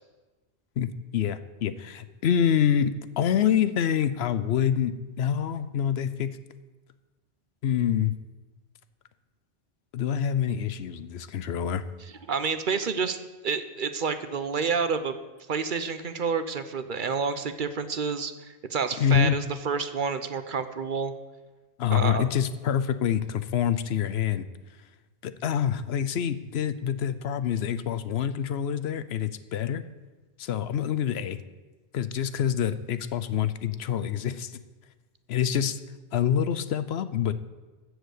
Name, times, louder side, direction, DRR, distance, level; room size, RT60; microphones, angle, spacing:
voice 1, 0.8-6.4 7.6-8.1 9.9-11.8 19.0-19.4 21.8-24.5 25.2-29.8 30.4-31.4 31.9-34.5 35.3-35.8 36.1-37.3, left 9 dB, 75° left, 13 dB, 0.9 m, -26 dB
voice 2, 12.3-13.2 13.4-15.1 15.5-21.1 21.9-22.3, right 5 dB, 55° right, 10 dB, 0.8 m, -29 dB
14.0 x 4.9 x 8.2 m, 1.2 s
omnidirectional pair, 1.1 m